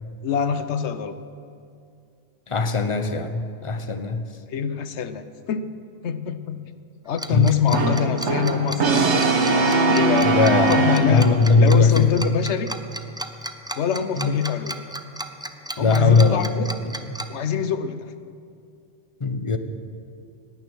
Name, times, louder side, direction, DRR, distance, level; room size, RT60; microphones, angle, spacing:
voice 1, 0.2-1.1 4.5-5.7 6.0-6.6 7.0-9.4 9.9-10.4 10.7-11.3 11.6-12.7 13.8-14.7 15.8-16.7 17.3-18.1, left 7 dB, 85° left, 11 dB, 1.0 m, -24 dB
voice 2, 2.5-4.2 7.3-7.8 10.2-12.1 14.2-14.4 15.8-16.4 16.8-16.9 19.2-19.6, left 4 dB, 30° left, 8 dB, 0.8 m, -19 dB
Tick-tock, 7.2-17.2, right 1 dB, 5° right, 0.4 m, -33 dB
Brass instrument, 7.7-11.5, right 3 dB, 90° right, 1.4 m, -21 dB
18.5 x 9.7 x 6.1 m, 2.4 s
omnidirectional pair, 1.1 m